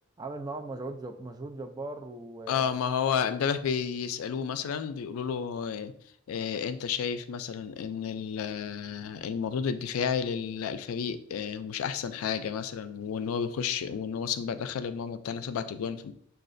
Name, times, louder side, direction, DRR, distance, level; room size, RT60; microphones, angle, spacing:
voice 1, 0.2-2.7, right 2 dB, 20° right, 6 dB, 0.3 m, -38 dB
voice 2, 2.5-5.9 6.3-16.1, left 7 dB, 90° left, 11 dB, 0.3 m, -31 dB
6.4 x 2.3 x 2.5 m, 0.66 s
head